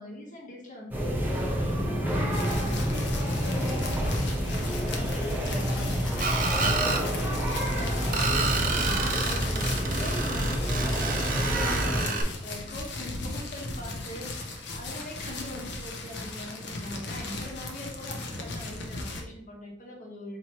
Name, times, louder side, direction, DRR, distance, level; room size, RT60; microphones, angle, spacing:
voice 1, 0.0-20.4, left 1 dB, 45° left, -2 dB, 1.1 m, -42 dB
sound 1, 0.9-12.0, equal, 10° right, 0.8 m, -28 dB
sound 2, 2.3-19.2, left 2 dB, 60° left, 0.6 m, -37 dB
Screech, 6.2-7.0 8.1-12.2, right 3 dB, 45° right, 0.5 m, -29 dB
4.4 x 2.8 x 2.9 m, 0.75 s
head